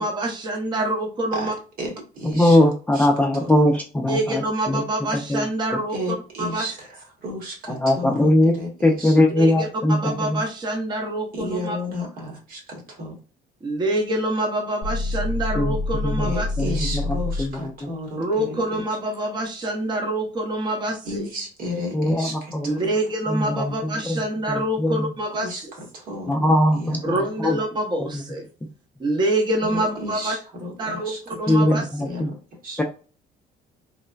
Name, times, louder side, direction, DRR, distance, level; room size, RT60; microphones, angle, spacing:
voice 1, 0.0-1.5 4.1-6.0 6.4-6.7 9.3-11.8 13.6-16.8 18.2-21.3 22.6-25.7 27.0-28.5 29.0-30.3 30.8-32.2, right 1 dB, 25° right, 2 dB, 0.7 m, -26 dB
voice 2, 1.8-2.6 2.9-3.1 3.3-3.5 5.9-9.2 11.3-13.1 16.2-18.6 21.0-22.8 25.4-25.6 25.9-27.1 29.7-31.2 31.5-31.7 32.1-32.8, left 1 dB, 60° right, 1 dB, 1.3 m, -33 dB
voice 3, 2.3-4.4 4.7-4.8 5.3-5.4 7.8-8.6 8.8-10.4 15.6-15.7 16.0-16.3 16.6-16.8 17.4-17.9 21.9-22.7 23.3-23.6 24.1-24.2 24.5-25.0 26.3-27.0 27.4-27.6 31.5-32.3 32.8-32.9, left 1 dB, 10° left, 2 dB, 0.3 m, -20 dB
sound 1, 14.8-17.6, left 2 dB, 40° left, 0.7 m, -27 dB
3.1 x 2.1 x 2.3 m, 0.35 s
cardioid pair, 110°, 17 cm